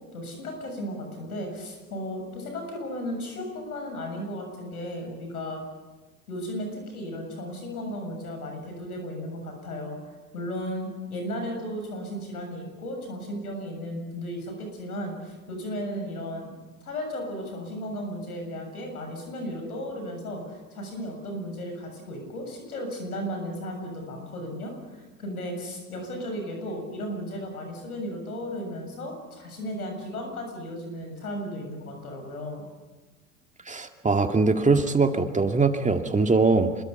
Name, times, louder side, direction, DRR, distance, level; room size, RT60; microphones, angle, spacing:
voice 1, 0.1-5.6 6.3-10.0 10.3-16.5 16.8-32.7, equal, 85° left, 4 dB, 7.3 m, -35 dB
voice 2, 33.7-36.7, right 3 dB, 15° right, 5 dB, 2.1 m, -22 dB
27.0 x 22.0 x 7.0 m, 1.2 s
hypercardioid pair, 70°, 43 cm